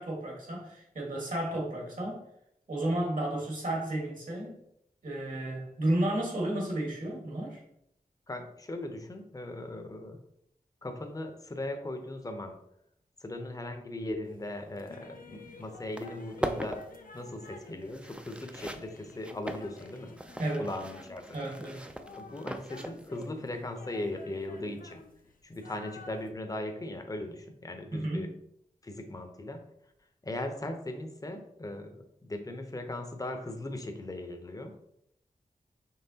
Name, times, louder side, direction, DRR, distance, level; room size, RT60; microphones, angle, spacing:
voice 1, 0.0-2.2 2.7-4.6 5.0-7.6 20.4-20.7 21.3-21.9 27.9-28.3, right 1 dB, 60° right, -2 dB, 1.6 m, -32 dB
voice 2, 8.3-10.2 10.8-12.6 13.2-16.8 17.1-20.1 20.6-21.4 22.2-25.0 25.4-28.3 28.8-29.6 30.2-32.0 32.2-34.8, left 1 dB, 25° left, 5 dB, 0.7 m, -38 dB
sound 1, 14.3-26.3, left 3 dB, 70° left, 0.5 m, -51 dB
sound 2, 15.4-15.5 15.8-23.3, right 1 dB, 5° right, 0.4 m, -40 dB
5.5 x 3.2 x 2.8 m, 0.75 s
wide cardioid pair, 70°, 15 cm